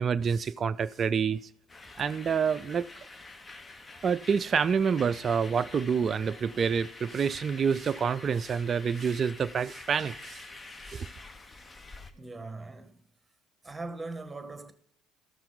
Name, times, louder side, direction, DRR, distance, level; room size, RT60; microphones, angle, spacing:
voice 1, 0.0-1.4 2.0-2.9 4.0-10.4 10.9-11.1, right 6 dB, 40° right, 0.4 m, -27 dB
sound 1, 1.7-12.1, left 3 dB, 25° left, 0.9 m, -47 dB
voice 2, 12.1-12.9 13.6-14.7, right 3 dB, 15° right, 1.3 m, -40 dB
14.0 x 5.9 x 3.9 m
hypercardioid pair, 65°, 0 cm